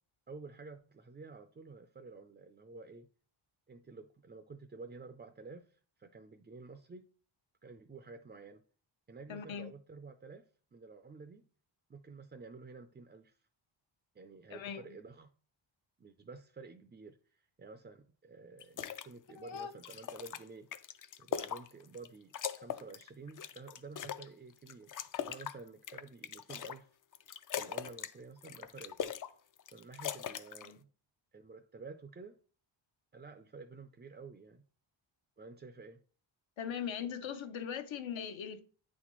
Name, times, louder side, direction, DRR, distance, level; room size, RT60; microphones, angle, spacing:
voice 1, 0.3-3.1 3.7-7.1 7.6-8.6 9.1-11.4 11.9-13.3 14.1-15.3 16.0-20.7 21.2-27.0 27.5-29.2 29.7-30.9 31.3-32.4 33.1-34.6 35.4-36.0, right 4 dB, 25° right, 0.4 m, -51 dB
voice 2, 9.3-9.7 14.5-14.8 19.4-19.7 30.6-30.8 36.6-38.6, left 8 dB, 75° left, 0.9 m, -40 dB
sound 1, 18.6-19.1 19.5-22.1 22.3-24.3 24.7-26.8 27.1-28.1 28.4-29.3 29.6-30.7, left 9 dB, 45° left, 0.4 m, -41 dB
9.1 x 4.2 x 3.0 m
wide cardioid pair, 125°, 47 cm